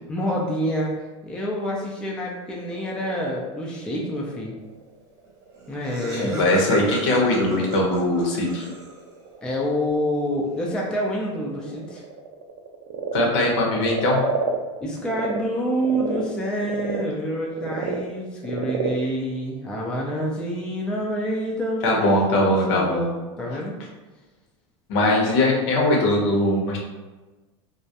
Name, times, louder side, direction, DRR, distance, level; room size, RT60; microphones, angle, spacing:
voice 1, 0.1-4.5 5.7-6.5 9.4-12.0 14.8-23.7, equal, 5° left, -2 dB, 0.3 m, -27 dB
Frog, 2.6-15.4 15.7-20.4, right 5 dB, 65° right, 0.4 m, -33 dB
Laughter, 5.3-5.4 5.5-9.2, right 1 dB, 25° right, 0.7 m, -36 dB
voice 2, 6.2-8.6 13.1-14.2 21.8-23.0 24.9-26.8, left 1 dB, 65° left, -1 dB, 0.8 m, -20 dB
2.3 x 2.0 x 2.7 m, 1.2 s
supercardioid pair, 125°, 16 cm